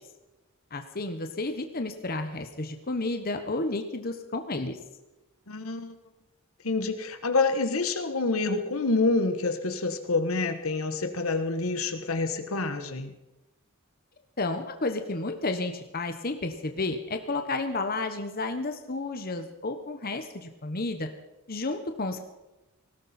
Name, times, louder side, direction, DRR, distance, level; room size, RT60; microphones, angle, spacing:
voice 1, 0.7-4.8 14.4-21.1 21.5-22.2, left 2 dB, 45° left, 6 dB, 1.2 m, -31 dB
voice 2, 5.5-5.9 6.6-13.1, left 3 dB, 75° left, 8 dB, 1.3 m, -27 dB
19.0 x 16.5 x 4.4 m, 1.0 s
head